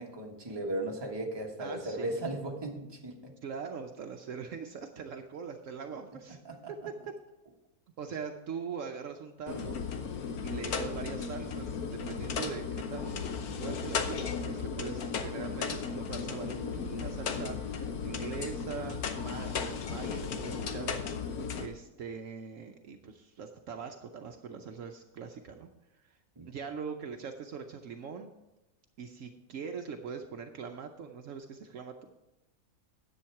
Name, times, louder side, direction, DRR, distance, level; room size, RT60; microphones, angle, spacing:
voice 1, 0.0-3.3 6.4-6.6 26.4-26.5, right 1 dB, 20° right, 0 dB, 1.3 m, -36 dB
voice 2, 1.6-2.3 3.4-6.4 6.7-6.9 8.0-9.8 10.4-13.3 13.6-21.3 21.6-26.2 26.5-28.3 29.0-31.9, right 6 dB, 65° right, 5 dB, 1.0 m, -42 dB
sound 1, 9.5-21.7, left 5 dB, 80° left, 1.4 m, -35 dB
10.5 x 7.9 x 4.6 m, 0.98 s
omnidirectional pair, 1.5 m